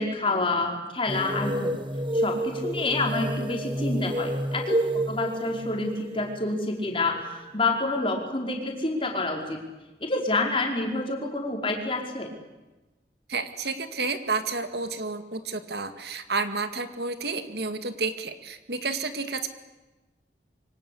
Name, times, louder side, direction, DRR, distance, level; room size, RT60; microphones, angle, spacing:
voice 1, 0.0-1.7 2.1-9.6 10.0-12.3, left 2 dB, 30° left, 1 dB, 4.8 m, -28 dB
sound 1, 1.1-7.5, right 1 dB, 30° right, 1.3 m, -29 dB
voice 2, 13.3-19.5, right 4 dB, 65° right, 9 dB, 2.2 m, -30 dB
26.5 x 24.5 x 8.6 m, 1.1 s
head